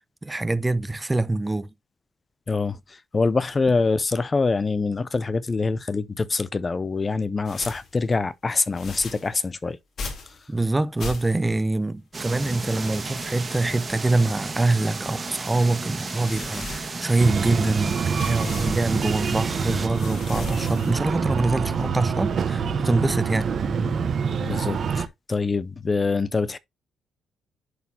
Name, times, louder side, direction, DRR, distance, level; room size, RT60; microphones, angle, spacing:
voice 1, 0.0-1.7 10.5-18.0 18.3-23.5, right 2 dB, 15° right, 0.6 m, -24 dB
voice 2, 2.5-9.8 24.4-26.6, left 4 dB, 30° left, 0.5 m, -25 dB
sound 1, 7.4-7.9 8.7-9.3 10.0-10.4 11.0-11.6 12.3-15.3 15.8-17.4 18.1-18.9 19.4-21.1, left 3 dB, 55° left, 2.8 m, -39 dB
sound 2, 12.1-19.9, right 3 dB, 30° right, 1.6 m, -33 dB
Breathing, 17.2-25.1, right 6 dB, 55° right, 1.0 m, -26 dB
11.0 x 4.2 x 2.8 m
cardioid pair, 90°, 0 cm